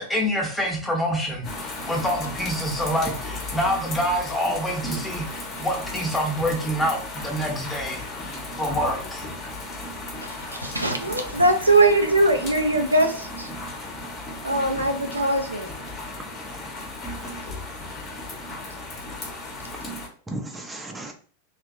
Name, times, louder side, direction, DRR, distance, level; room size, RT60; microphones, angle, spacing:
voice 1, 0.0-9.3, equal, 5° left, 0 dB, 0.9 m, -27 dB
sound 1, 1.4-20.1, left 2 dB, 30° left, 0.9 m, -35 dB
voice 2, 10.2-13.5 14.4-15.7, right 2 dB, 85° right, 4 dB, 0.4 m, -21 dB
voice 3, 16.1-17.0 20.3-21.1, right 1 dB, 10° right, 3 dB, 0.6 m, -38 dB
3.2 x 2.7 x 2.4 m, 0.44 s
figure-of-eight pair, 90°, 0 cm